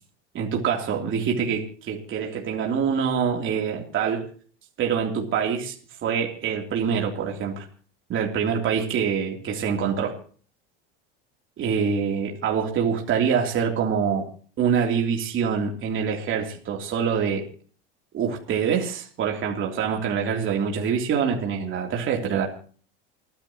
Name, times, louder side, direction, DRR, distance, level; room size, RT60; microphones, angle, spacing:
voice 1, 0.3-4.3 4.8-5.7 6.0-7.6 8.1-10.1 11.6-14.2 14.6-17.4 18.1-22.5, right 7 dB, 40° right, 0 dB, 3.3 m, -25 dB
28.5 x 10.5 x 3.0 m, 0.43 s
supercardioid pair, 105°, 30 cm